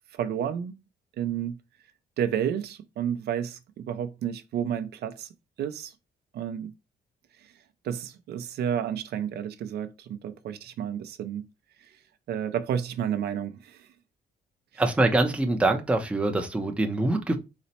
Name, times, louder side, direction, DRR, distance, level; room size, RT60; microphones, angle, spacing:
voice 1, 0.1-0.8 1.2-1.6 2.2-5.3 5.6-5.9 6.3-6.7 7.8-11.4 12.3-13.9, right 9 dB, 70° right, 0.5 m, -31 dB
voice 2, 14.8-17.4, right 2 dB, 5° right, 0.5 m, -24 dB
4.0 x 2.1 x 4.0 m
cardioid pair, 145°, 17 cm